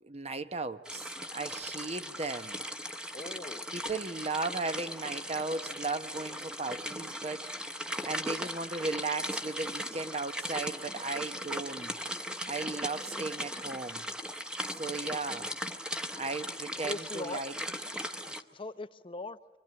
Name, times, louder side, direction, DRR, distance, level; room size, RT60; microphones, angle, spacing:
voice 1, 0.0-2.6 3.7-7.5 8.0-11.9 12.5-14.0 14.8-15.5 16.2-17.5, right 3 dB, 35° right, 0.9 m, -36 dB
sound 1, 0.8-18.4, equal, 5° right, 1.0 m, -38 dB
voice 2, 3.1-3.7 16.8-17.4 17.9-18.0 18.2-19.4, left 3 dB, 30° left, 0.7 m, -40 dB
25.5 x 25.0 x 8.8 m
head